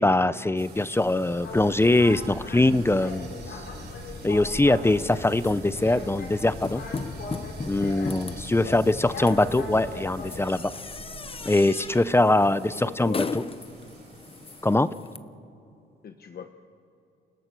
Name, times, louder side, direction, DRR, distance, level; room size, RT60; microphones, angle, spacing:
voice 1, 0.0-3.3 4.2-6.8 7.7-10.7 11.4-13.4 14.6-14.9, left 2 dB, 10° left, 15 dB, 0.7 m, -22 dB
sound 1, 0.6-14.7, right 3 dB, 55° right, 7.0 m, -46 dB
Boat Water vehicle, 1.4-10.4, left 3 dB, 70° left, 5.1 m, -39 dB
sound 2, 5.3-15.2, left 4 dB, 30° left, 1.0 m, -38 dB
voice 2, 8.5-8.8 12.5-13.3 16.0-16.5, left 7 dB, 50° left, 7 dB, 1.2 m, -41 dB
29.0 x 16.5 x 6.7 m, 2.8 s
cardioid pair, 90°, 20 cm